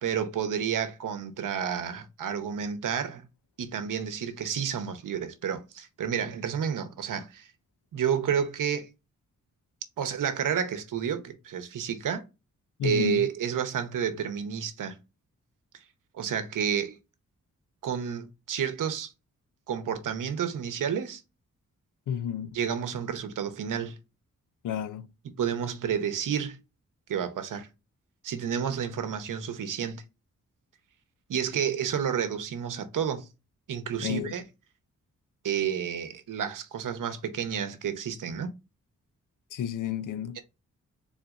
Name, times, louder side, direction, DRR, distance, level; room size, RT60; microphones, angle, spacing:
voice 1, 0.0-3.3 3.6-7.5 7.9-8.9 10.0-12.2 12.8-15.0 16.1-17.0 17.8-19.1 19.7-21.2 22.5-24.0 25.2-26.6 27.1-27.7 28.2-30.0 31.3-33.3 33.7-34.4 35.4-38.5, right 8 dB, 80° right, 0.8 m, -30 dB
voice 2, 12.8-13.3 22.1-22.5 24.6-25.1 34.0-34.3 39.5-40.4, left 9 dB, 80° left, 0.5 m, -31 dB
3.9 x 2.4 x 3.9 m
cardioid pair, 80°, 31 cm